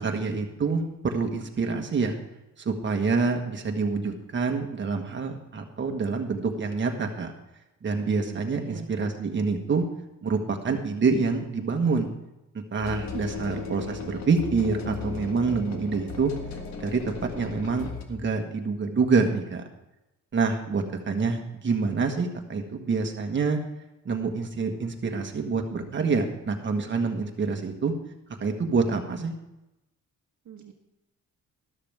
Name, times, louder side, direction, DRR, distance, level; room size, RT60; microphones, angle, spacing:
voice 1, 0.0-2.2 2.6-7.3 7.8-9.8 10.2-12.1 12.7-16.3 16.8-19.6 20.3-23.6 24.0-27.9 28.4-29.3, right 4 dB, 35° right, 3 dB, 1.5 m, -27 dB
voice 2, 8.3-8.9 30.4-30.7, right 6 dB, 55° right, 1 dB, 1.3 m, -42 dB
sound 1, 12.8-18.0, left 6 dB, 55° left, 1.6 m, -37 dB
13.0 x 12.5 x 3.5 m, 0.93 s
cardioid pair, 145°, 33 cm